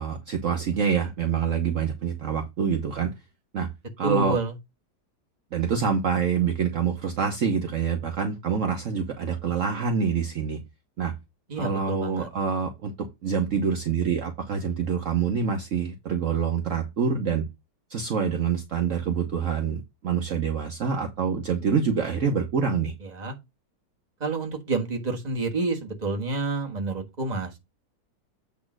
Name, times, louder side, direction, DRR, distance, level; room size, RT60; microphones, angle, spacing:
voice 1, 0.0-3.1 3.5-3.7 4.0-4.4 5.5-10.6 11.0-11.1 11.6-12.9 13.2-17.4 17.9-22.9, right 6 dB, 55° right, 1.2 m, -26 dB
voice 2, 4.0-4.5 11.5-12.3 23.0-23.3 24.2-27.6, right 3 dB, 25° right, 1.5 m, -29 dB
8.4 x 3.2 x 6.1 m
omnidirectional pair, 1.7 m